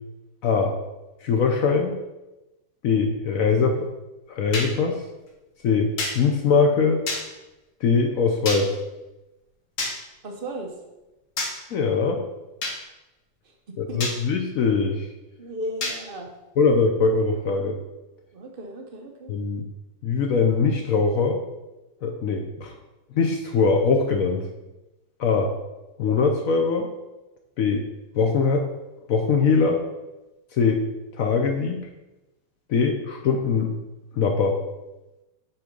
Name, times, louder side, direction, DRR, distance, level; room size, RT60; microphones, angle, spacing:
voice 1, 0.4-0.8 1.2-2.0 2.8-3.9 4.3-5.0 5.6-7.0 7.8-8.8 11.7-12.2 13.8-15.1 16.6-17.8 19.3-19.6 20.0-21.4 22.0-22.7 23.1-24.4 25.2-25.6 26.0-26.9 27.6-27.9 28.1-28.7 29.1-29.9 30.5-30.8 31.1-31.9 32.7-33.7 34.1-34.6, left 4 dB, 70° left, 3 dB, 0.8 m, -22 dB
sound 1, 4.5-4.7 6.0-6.1 7.1-7.2 8.4-8.6 9.8-9.9 11.4-11.5 12.6-12.8 14.0-14.2 15.8-16.0, left 2 dB, 50° left, 1.7 m, -27 dB
voice 2, 10.2-10.7 13.7-14.0 15.4-16.3 18.3-19.3, right 1 dB, 80° right, 3 dB, 0.4 m, -35 dB
8.4 x 3.9 x 5.2 m, 1.0 s
omnidirectional pair, 2.1 m